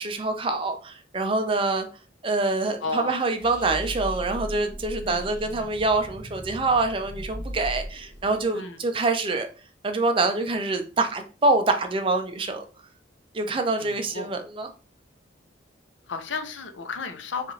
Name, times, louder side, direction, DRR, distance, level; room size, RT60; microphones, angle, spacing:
voice 1, 0.0-1.9 2.2-9.5 9.8-12.6 13.3-14.7, right 3 dB, 30° right, 0.4 m, -25 dB
voice 2, 2.8-3.2 5.0-5.2 8.5-8.8 13.8-14.4 16.1-17.5, left 4 dB, 85° left, 0.6 m, -33 dB
sound 1, 3.4-8.5, equal, 25° left, 1.5 m, -38 dB
4.9 x 2.5 x 3.1 m
head